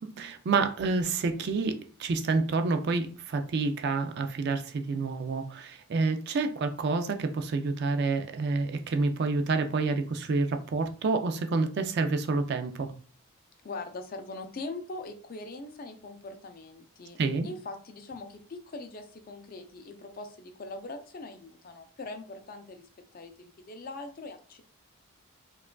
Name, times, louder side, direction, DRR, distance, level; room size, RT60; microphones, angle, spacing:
voice 1, 0.0-12.9 17.2-17.5, right 3 dB, 50° right, 0.3 m, -28 dB
voice 2, 13.6-24.6, left 2 dB, 40° left, 0.4 m, -42 dB
4.5 x 2.4 x 2.2 m
head